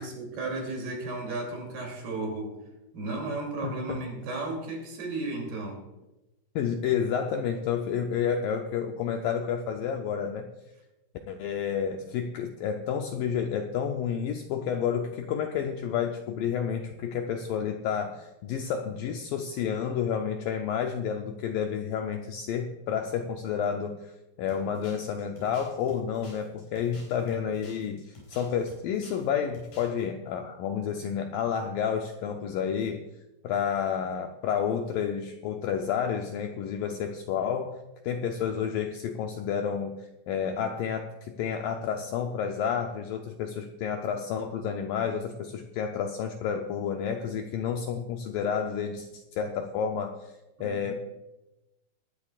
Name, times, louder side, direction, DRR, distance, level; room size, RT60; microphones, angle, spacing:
voice 1, 0.0-2.5 2.9-5.8 50.6-51.0, right 2 dB, 70° right, 1 dB, 4.8 m, -34 dB
voice 2, 3.6-4.0 6.6-10.5 11.3-24.0 24.4-28.0 28.3-33.0 33.4-37.8 38.0-40.0 40.3-41.1 41.4-50.2 50.6-50.9, left 7 dB, 85° left, 4 dB, 1.9 m, -30 dB
sound 1, 24.5-29.3 29.5-30.0, left 2 dB, 55° left, 7.0 m, -51 dB
19.5 x 12.0 x 2.4 m, 0.98 s
omnidirectional pair, 4.8 m